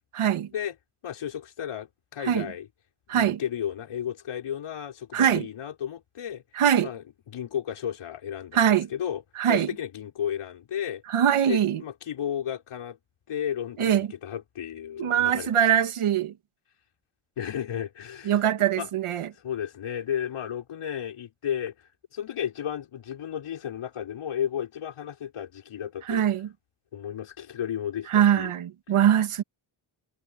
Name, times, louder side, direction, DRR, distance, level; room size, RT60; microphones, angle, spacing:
voice 1, 0.1-0.5 2.2-2.5 3.1-3.4 5.1-5.5 6.5-6.9 8.5-8.9 9.4-9.7 11.1-11.8 13.8-14.1 15.0-16.3 18.3-19.3 26.0-26.5 28.1-29.4, right 9 dB, 90° right, 2.1 m, -22 dB
voice 2, 1.0-2.7 3.1-6.4 6.8-9.2 9.5-11.0 11.5-13.0 13.3-15.8 17.4-18.9 19.4-26.2 26.9-28.5, left 9 dB, 85° left, 5.5 m, -33 dB
wide cardioid pair, 170°, 49 cm